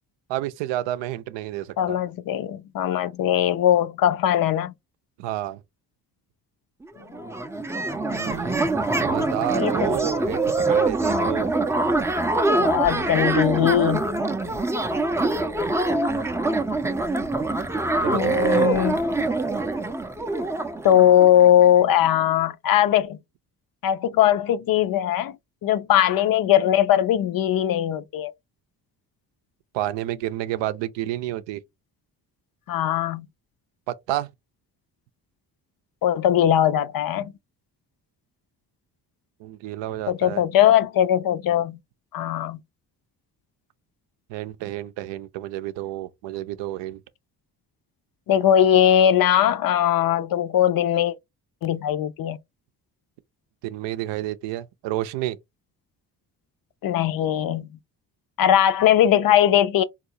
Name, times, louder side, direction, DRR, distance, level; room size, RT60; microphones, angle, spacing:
voice 1, 0.3-2.0 5.2-5.6 8.1-11.5 14.4-14.7 18.0-18.7 29.7-31.6 33.9-34.3 39.4-40.4 44.3-47.0 53.6-55.4, right 14 dB, 85° right, 0.5 m, -30 dB
voice 2, 1.8-4.7 9.5-9.7 12.6-14.1 18.1-19.0 20.8-23.2 23.8-25.4 25.6-28.3 32.7-33.3 36.0-37.3 40.1-41.8 42.1-42.6 48.3-51.1 51.6-52.4 56.8-57.7 58.4-59.8, left 11 dB, 55° left, 0.5 m, -20 dB
sound 1, 6.8-6.9 7.1-21.7, right 2 dB, 5° right, 0.3 m, -24 dB
3.8 x 2.4 x 2.7 m
supercardioid pair, 55°, 42 cm